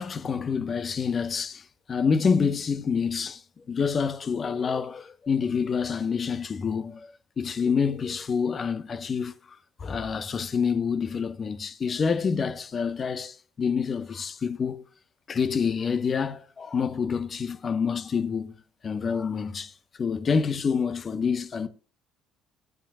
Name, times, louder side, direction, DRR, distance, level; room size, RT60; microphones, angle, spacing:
voice 1, 0.0-7.1 7.4-14.8 15.3-18.5 18.8-21.7, left 6 dB, 40° left, 1.1 m, -27 dB
16.0 x 9.0 x 2.5 m
figure-of-eight pair, 50°, 0 cm